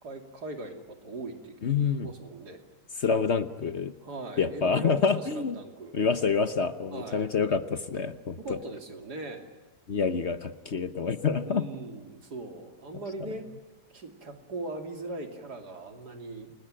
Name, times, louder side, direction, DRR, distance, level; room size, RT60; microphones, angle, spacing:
voice 1, 0.0-1.5 2.0-2.6 4.0-6.0 6.9-7.3 8.4-9.4 11.5-13.5 13.9-16.5, right 2 dB, 75° right, 5 dB, 3.4 m, -39 dB
voice 2, 1.6-2.1 3.0-3.9 4.4-5.6 5.9-8.4 9.9-11.6, left 5 dB, 45° left, 11 dB, 1.1 m, -27 dB
29.0 x 20.5 x 9.0 m, 1.3 s
omnidirectional pair, 1.7 m